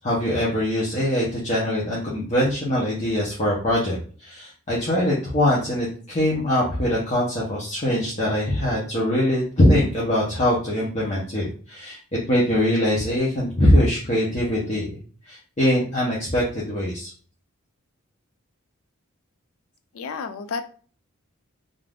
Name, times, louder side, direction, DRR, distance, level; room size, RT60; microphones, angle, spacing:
voice 1, 0.0-12.0 12.3-15.0 15.3-17.1, left 1 dB, 35° left, -6 dB, 0.7 m, -22 dB
voice 2, 19.9-20.6, left 5 dB, 85° left, 8 dB, 0.4 m, -31 dB
2.5 x 2.3 x 3.4 m, 0.42 s
head